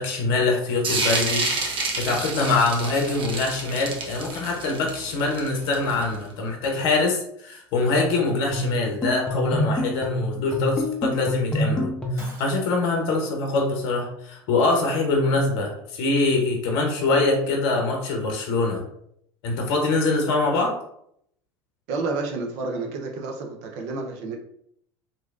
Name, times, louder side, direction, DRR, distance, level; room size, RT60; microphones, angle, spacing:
voice 1, 0.0-1.5 2.0-18.8 19.4-20.8, left 3 dB, 65° left, 2 dB, 0.7 m, -24 dB
sound 1, 0.8-6.2, right 3 dB, 40° right, 0.9 m, -28 dB
sound 2, 8.5-12.4, left 1 dB, 5° left, 0.6 m, -27 dB
Shatter, 12.2-13.0, right 1 dB, 20° right, 1.3 m, -44 dB
voice 2, 21.9-24.4, right 3 dB, 65° right, 2 dB, 0.6 m, -30 dB
3.0 x 2.6 x 2.4 m, 0.72 s
hypercardioid pair, 80°, 13 cm